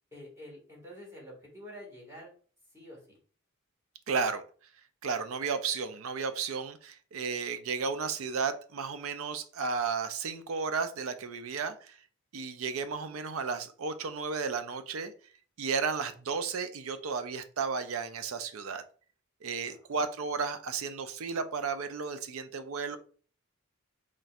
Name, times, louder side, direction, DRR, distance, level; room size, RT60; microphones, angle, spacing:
voice 1, 0.1-2.3 2.7-3.2 19.6-19.9, equal, 15° right, -3 dB, 1.7 m, -48 dB
voice 2, 4.1-4.4 5.0-12.0 12.3-15.1 15.6-18.8 19.4-23.0, right 5 dB, 70° right, 10 dB, 0.5 m, -33 dB
4.2 x 3.1 x 2.4 m, 0.42 s
head